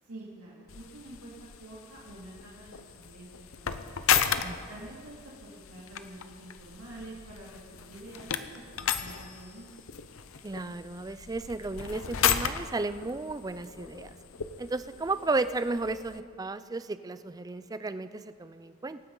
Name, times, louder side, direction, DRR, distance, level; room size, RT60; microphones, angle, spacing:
voice 1, 0.0-3.3 3.5-4.1 4.7-9.7, right 2 dB, 90° right, -5 dB, 2.4 m, -47 dB
sound 1, 0.7-16.2, left 8 dB, 65° left, 0.7 m, -34 dB
sound 2, 1.9-2.0 2.3-2.4 2.9-3.0 4.4-5.2 5.7-6.0 6.3-6.4 6.7-6.8 7.1-7.2 8.7-9.0 9.3-9.4 10.7-10.8 11.1-11.2 11.6-11.7 13.1-13.9 14.5-14.7 15.0-15.1 15.4-15.5 15.8-15.9, left 1 dB, 50° left, 1.6 m, -59 dB
voice 2, 10.4-14.1 14.6-19.0, right 3 dB, 15° right, 13 dB, 0.3 m, -33 dB
24.0 x 9.6 x 3.9 m, 2.1 s
head